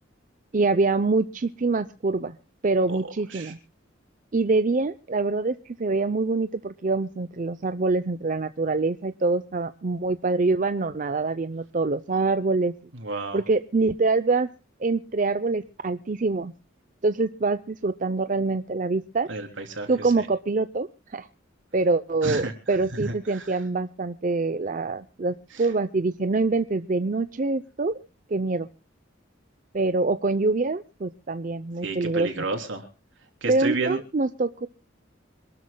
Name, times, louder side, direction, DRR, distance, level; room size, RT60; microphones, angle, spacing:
voice 1, 0.5-2.4 2.6-3.6 4.3-12.7 13.3-14.5 14.8-16.5 17.0-19.3 19.9-21.3 21.7-28.0 28.3-28.7 29.7-32.5 33.5-34.7, right 3 dB, 40° right, 11 dB, 0.6 m, -25 dB
voice 2, 13.0-13.4 19.3-19.9 20.2-20.3 22.2-22.5 23.1-23.5 25.5-25.7 31.8-32.8 33.4-34.0, right 3 dB, 75° right, 4 dB, 3.4 m, -31 dB
26.5 x 12.5 x 2.2 m, 0.34 s
head